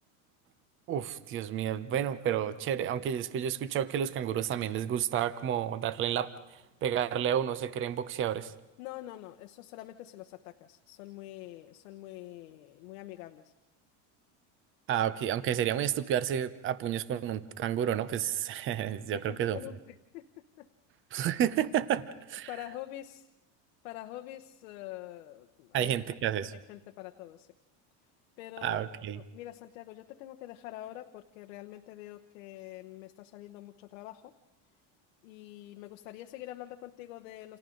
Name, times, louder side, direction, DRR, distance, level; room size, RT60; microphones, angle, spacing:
voice 1, 0.9-6.3 6.8-8.5 14.9-19.6 21.1-22.5 25.7-26.5 28.6-29.2, right 10 dB, 30° right, 15 dB, 0.8 m, -30 dB
voice 2, 8.8-13.5 19.1-20.7 22.5-23.3 23.8-26.0 26.5-27.5 28.4-34.3 35.2-37.6, left 15 dB, 90° left, 5 dB, 1.1 m, -45 dB
29.5 x 28.0 x 3.9 m, 1.0 s
cardioid pair, 150°, 39 cm